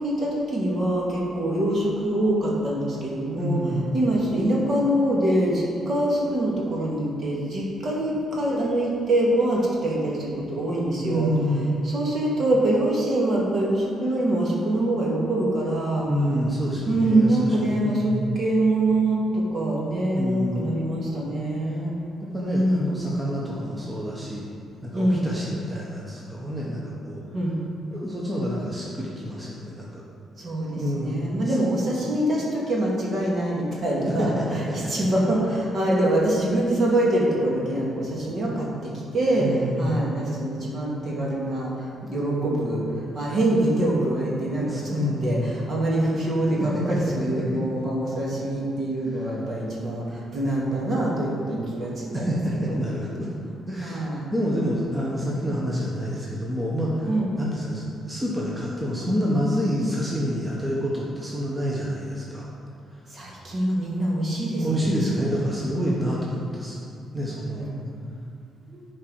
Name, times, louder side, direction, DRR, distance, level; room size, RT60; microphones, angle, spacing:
voice 1, 0.0-3.6 3.9-11.3 11.8-16.1 16.9-21.9 22.4-23.1 24.9-25.2 27.3-27.6 30.4-39.5 39.8-52.8 53.8-54.2 57.1-57.3 63.1-65.4 65.9-66.1 67.6-67.8, right 1 dB, 50° right, -4 dB, 2.3 m, -24 dB
voice 2, 3.4-3.9 11.0-11.7 16.0-18.4 20.1-20.8 22.3-24.5 24.8-27.2 27.9-30.0 30.8-31.6 34.1-35.1 39.4-40.0 44.7-45.6 46.6-47.0 47.4-47.6 49.1-49.3 52.1-53.3 53.7-57.1 57.3-62.5 64.6-66.8 67.1-67.7 68.7-68.9, equal, 15° right, -5 dB, 1.4 m, -28 dB
10.5 x 4.8 x 4.8 m, 2.4 s
cardioid pair, 90°, 0 cm